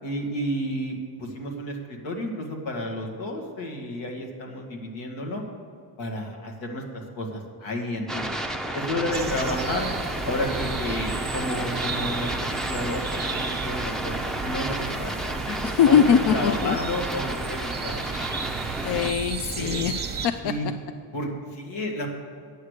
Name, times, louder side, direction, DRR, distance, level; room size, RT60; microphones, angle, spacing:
voice 1, 0.0-5.4 6.0-8.3 8.7-9.9 10.2-15.6 15.9-18.5 19.6-19.8 20.4-20.7 21.1-22.1, left 1 dB, 85° left, 1 dB, 2.1 m, -31 dB
sound 1, 8.1-19.1, right 1 dB, ahead, 0.5 m, -32 dB
sound 2, 9.1-20.3, right 5 dB, 20° right, 1.0 m, -34 dB
voice 2, 15.6-16.8 18.8-20.5, left 8 dB, 60° left, 10 dB, 0.6 m, -22 dB
9.4 x 6.5 x 8.3 m, 2.4 s
cardioid pair, 120°, 45 cm